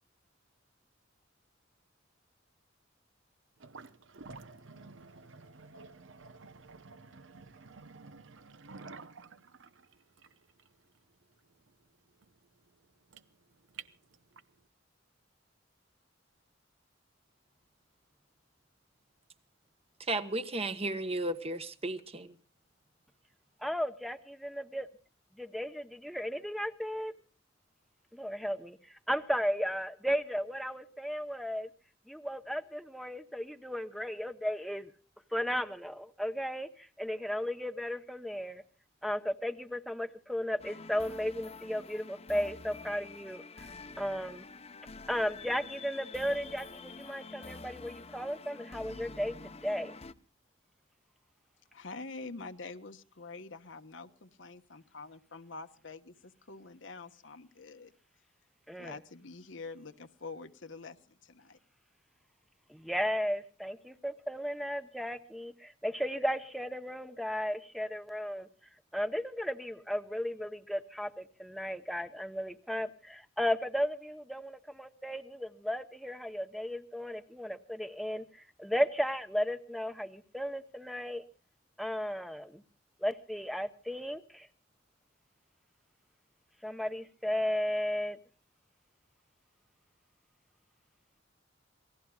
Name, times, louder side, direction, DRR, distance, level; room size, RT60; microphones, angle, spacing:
sound 1, 3.6-14.6, right 4 dB, 75° right, 0.9 m, -51 dB
voice 1, 20.0-22.3, right 2 dB, 30° right, 1.2 m, -34 dB
voice 2, 23.6-24.9 25.4-27.2 28.1-31.7 32.1-34.9 35.3-38.6 39.0-43.7 44.0-44.5 45.1-49.9 58.7-59.0 62.7-68.5 68.9-81.2 81.8-82.6 83.0-84.5 86.6-88.2, equal, ahead, 0.9 m, -35 dB
sound 2, 40.6-50.1, left 4 dB, 35° left, 0.9 m, -47 dB
voice 3, 51.7-57.9 58.8-61.6, left 3 dB, 70° left, 1.2 m, -46 dB
27.5 x 19.0 x 2.4 m
head